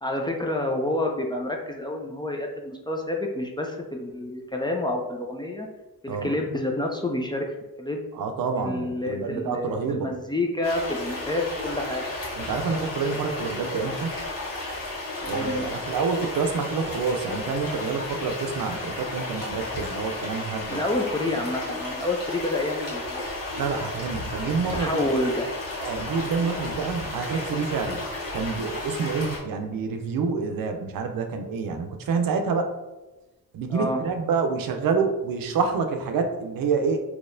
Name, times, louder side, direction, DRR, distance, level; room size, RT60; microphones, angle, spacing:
voice 1, 0.0-5.7 6.0-8.0 8.6-12.0 15.2-15.7 20.7-23.3 24.7-25.5 33.7-34.0, left 1 dB, 15° left, 1 dB, 0.4 m, -28 dB
voice 2, 8.1-10.1 12.4-14.1 15.2-20.8 23.6-25.0 25.8-28.0 28.3-32.7 33.5-37.0, right 5 dB, 75° right, 5 dB, 0.6 m, -27 dB
sound 1, 10.6-29.4, left 2 dB, 65° left, 1.4 m, -33 dB
4.0 x 2.8 x 2.6 m, 1.1 s
cardioid pair, 110°, 35 cm